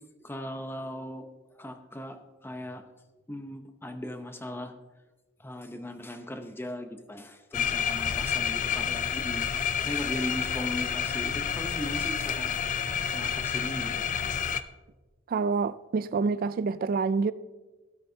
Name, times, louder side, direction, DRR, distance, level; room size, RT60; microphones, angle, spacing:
voice 1, 0.2-1.3 1.6-2.8 3.3-4.7 5.4-12.6 13.1-14.0, left 1 dB, 10° left, 0.7 m, -38 dB
sound 1, 7.5-14.6, left 7 dB, 40° left, 0.4 m, -29 dB
voice 2, 15.3-17.3, right 4 dB, 45° right, 0.3 m, -27 dB
16.5 x 8.6 x 2.8 m
head